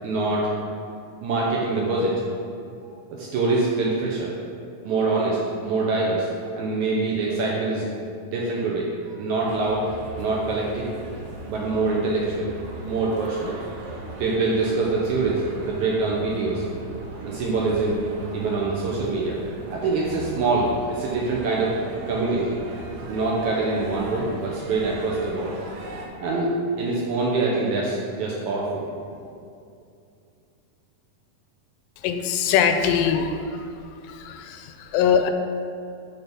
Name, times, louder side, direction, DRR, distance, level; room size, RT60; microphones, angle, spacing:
voice 1, 0.0-0.5 1.2-2.2 2.8-4.3 4.8-6.3 6.6-7.9 8.3-9.9 10.2-10.9 11.5-12.5 12.8-13.6 14.2-16.6 17.2-18.0 18.3-19.4 19.7-21.8 22.1-22.6 23.1-25.5 26.2-28.9, right 3 dB, 75° right, -4 dB, 1.9 m, -24 dB
sound 1, 9.4-26.1, right 2 dB, 90° right, 2.7 m, -38 dB
voice 2, 32.0-33.7 34.0-35.3, left 7 dB, 85° left, 7 dB, 2.2 m, -22 dB
8.1 x 3.7 x 5.2 m, 2.4 s
omnidirectional pair, 3.9 m